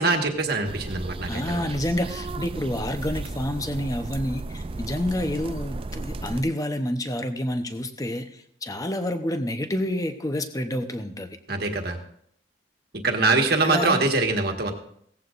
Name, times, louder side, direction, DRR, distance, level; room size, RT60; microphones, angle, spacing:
voice 1, 0.0-1.6 11.5-12.0 13.0-14.7, right 3 dB, 55° right, 3 dB, 1.6 m, -23 dB
sound 1, 0.7-6.4, right 2 dB, 30° right, 0.4 m, -34 dB
voice 2, 1.3-11.3 13.6-14.0, left 1 dB, 20° left, 8 dB, 0.8 m, -28 dB
17.0 x 14.5 x 2.5 m, 0.67 s
head